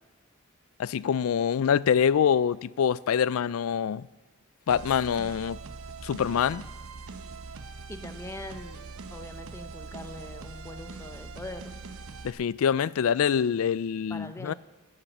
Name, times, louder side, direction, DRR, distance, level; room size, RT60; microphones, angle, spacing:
voice 1, 0.8-4.1 4.7-5.6 6.0-6.6 12.2-14.5, left 7 dB, 75° left, 0.3 m, -25 dB
sound 1, 4.7-12.3, right 4 dB, 80° right, 0.9 m, -42 dB
voice 2, 7.6-8.8 9.1-11.7 14.1-14.5, left 1 dB, 10° left, 0.7 m, -42 dB
12.0 x 10.5 x 7.1 m
head